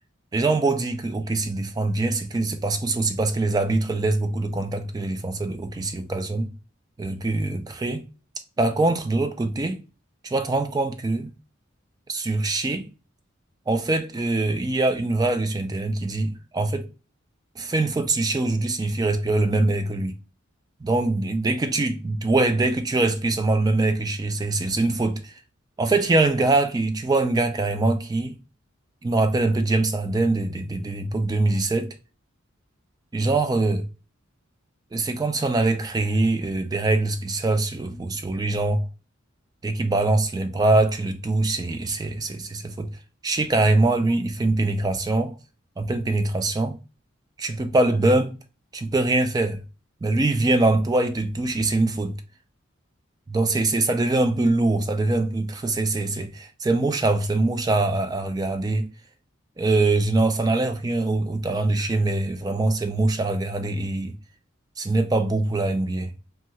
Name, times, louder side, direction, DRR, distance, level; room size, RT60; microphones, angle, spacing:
voice 1, 0.3-6.5 7.0-8.1 8.6-9.8 10.2-11.3 12.1-12.9 13.7-16.9 17.6-20.1 20.8-25.3 25.8-28.4 29.0-32.0 33.1-33.9 34.9-38.9 39.6-43.0 43.2-45.3 45.8-46.8 47.4-48.4 48.7-49.6 50.0-52.2 53.3-58.9 59.6-64.2 64.8-66.1, right 2 dB, 20° right, 0.3 m, -23 dB
2.6 x 2.4 x 2.9 m
head